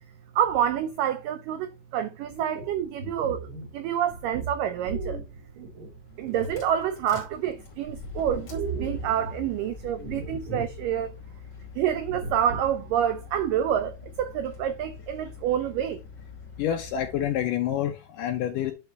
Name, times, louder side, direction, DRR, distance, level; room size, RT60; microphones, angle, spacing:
voice 1, 0.4-5.2 6.2-11.2 11.8-16.0, right 10 dB, 90° right, 1.9 m, -28 dB
sound 1, 2.3-7.3 7.6-9.5 10.0-10.8 11.1-11.2 11.9-12.8, right 3 dB, 40° right, 2.3 m, -37 dB
sound 2, 6.0-17.5, left 6 dB, 35° left, 3.0 m, -45 dB
voice 2, 16.6-18.7, left 10 dB, 75° left, 2.0 m, -28 dB
9.3 x 4.1 x 4.1 m
omnidirectional pair, 4.6 m